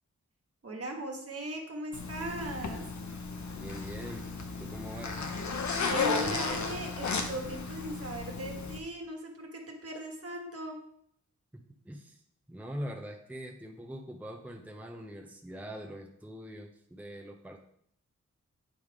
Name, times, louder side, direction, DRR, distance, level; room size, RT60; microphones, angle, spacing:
voice 1, 0.6-2.8 5.7-10.8, right 1 dB, 55° right, 2 dB, 1.4 m, -38 dB
Zipper (clothing), 1.9-8.8, left 4 dB, 70° left, 0.8 m, -34 dB
voice 2, 3.5-4.3 4.6-5.3 11.5-12.2 12.5-17.6, equal, 5° right, 2 dB, 0.6 m, -43 dB
9.1 x 3.5 x 4.7 m, 0.68 s
wide cardioid pair, 115°, 29 cm